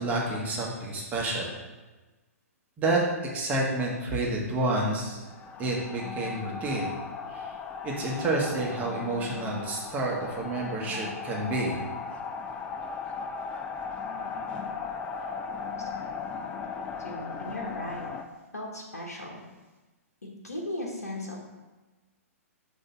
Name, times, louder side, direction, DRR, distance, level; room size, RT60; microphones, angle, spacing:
voice 1, 0.0-1.5 2.8-3.0 3.3-5.2 5.6-6.9 7.3-7.4 7.8-11.8, right 2 dB, 20° right, -3 dB, 1.0 m, -29 dB
sound 1, 5.2-18.2, left 5 dB, 15° left, 0.3 m, -37 dB
voice 2, 17.0-18.1 18.5-19.4 20.4-21.4, left 1 dB, 75° left, -2 dB, 1.1 m, -36 dB
6.4 x 2.8 x 5.6 m, 1.2 s
figure-of-eight pair, 115°, 8 cm